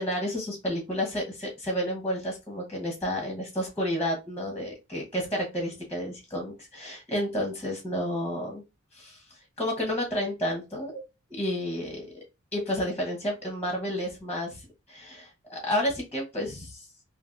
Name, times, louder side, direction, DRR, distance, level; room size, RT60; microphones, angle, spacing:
voice 1, 0.0-8.6 8.9-9.2 9.6-11.0 11.3-12.1 12.5-16.8, equal, 10° left, 0 dB, 0.9 m, -31 dB
3.3 x 2.6 x 2.6 m, 0.25 s
head